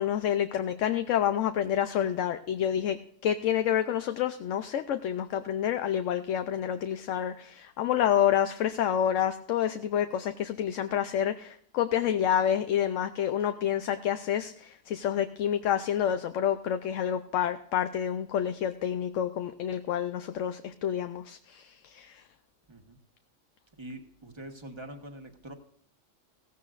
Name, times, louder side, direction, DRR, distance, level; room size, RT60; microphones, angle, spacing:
voice 1, 0.0-22.2, left 9 dB, 70° left, 9 dB, 1.0 m, -28 dB
voice 2, 23.8-25.5, right 1 dB, 20° right, 5 dB, 1.4 m, -44 dB
16.5 x 15.0 x 2.5 m, 0.64 s
omnidirectional pair, 1.4 m